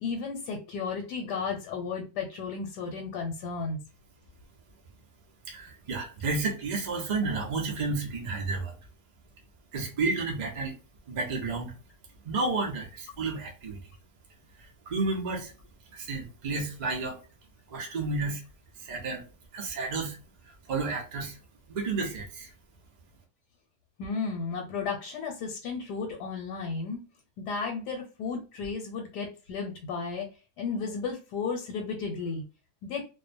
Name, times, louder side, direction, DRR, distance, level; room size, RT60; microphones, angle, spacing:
voice 1, 0.0-3.8 24.0-27.0 27.4-30.3 30.6-32.4 32.8-33.1, left 5 dB, 80° left, 1 dB, 1.2 m, -34 dB
voice 2, 5.5-8.8 9.7-10.7 11.1-11.7 12.2-13.8 14.9-15.5 15.9-17.2 17.7-18.4 18.8-19.2 19.5-20.2 20.7-21.4 21.7-22.5, right 3 dB, 60° right, 0 dB, 0.4 m, -31 dB
2.6 x 2.1 x 2.5 m, 0.32 s
omnidirectional pair, 1.7 m